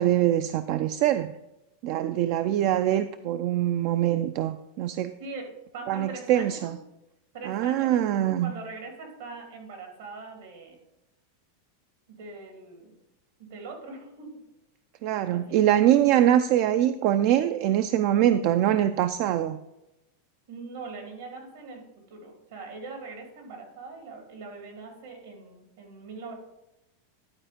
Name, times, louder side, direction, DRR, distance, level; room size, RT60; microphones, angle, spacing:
voice 1, 0.0-1.3 1.8-5.2 5.9-6.8 7.5-8.5 15.0-19.6, right 12 dB, 55° right, 11 dB, 0.4 m, -23 dB
voice 2, 5.2-6.7 7.3-10.8 12.1-13.0 13.4-14.4 15.3-15.8 20.5-21.8 22.1-26.3, right 3 dB, 75° right, 3 dB, 2.6 m, -42 dB
11.5 x 4.2 x 5.1 m, 0.94 s
supercardioid pair, 125°, 0 cm